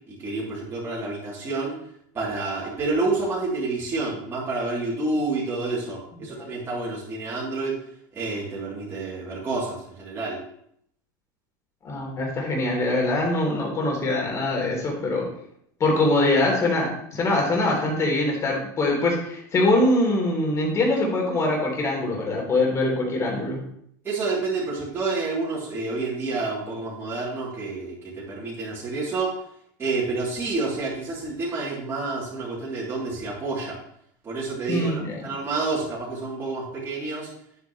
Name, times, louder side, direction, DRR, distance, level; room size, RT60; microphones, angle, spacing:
voice 1, 0.1-1.7 2.1-7.8 8.1-10.4 24.0-29.3 29.8-33.8 34.2-37.3, right 3 dB, 20° right, -8 dB, 3.1 m, -29 dB
voice 2, 11.8-15.2 15.8-23.6 34.7-35.2, left 2 dB, 30° left, -1 dB, 3.2 m, -23 dB
10.0 x 8.2 x 3.2 m, 0.71 s
supercardioid pair, 135°, 11 cm